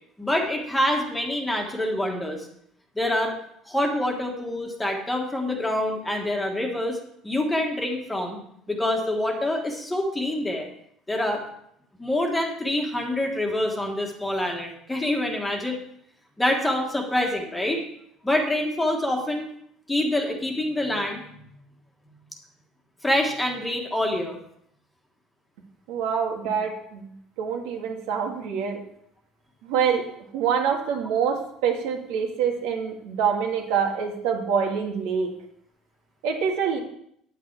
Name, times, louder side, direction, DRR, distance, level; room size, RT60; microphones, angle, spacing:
voice 1, 0.2-2.5 2.9-3.4 3.7-7.0 7.2-8.4 8.7-10.7 11.1-11.4 12.0-15.8 16.4-17.8 18.2-19.5 19.9-21.5 23.0-24.4, left 1 dB, 5° left, 1 dB, 1.5 m, -26 dB
voice 2, 25.9-27.1 27.4-28.8 29.6-30.0 30.3-35.3 36.2-36.8, right 7 dB, 85° right, 2 dB, 2.0 m, -25 dB
9.7 x 9.1 x 4.6 m, 0.71 s
cardioid pair, 170°, 0 cm